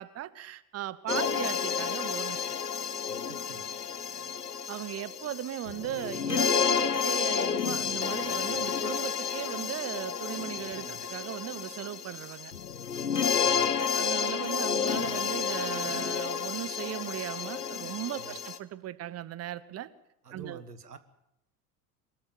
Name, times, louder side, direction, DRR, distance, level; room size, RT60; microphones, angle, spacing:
voice 1, 0.0-2.5 4.7-12.5 13.9-19.9 20.3-20.6, right 12 dB, 30° right, 1.1 m, -37 dB
sound 1, 1.1-18.6, left 7 dB, 90° left, 1.0 m, -31 dB
voice 2, 3.0-3.7 10.4-11.0 13.3-13.7 18.2-18.5 20.2-21.0, right 5 dB, 85° right, 1.5 m, -49 dB
23.0 x 13.0 x 9.1 m
figure-of-eight pair, 75°, 46 cm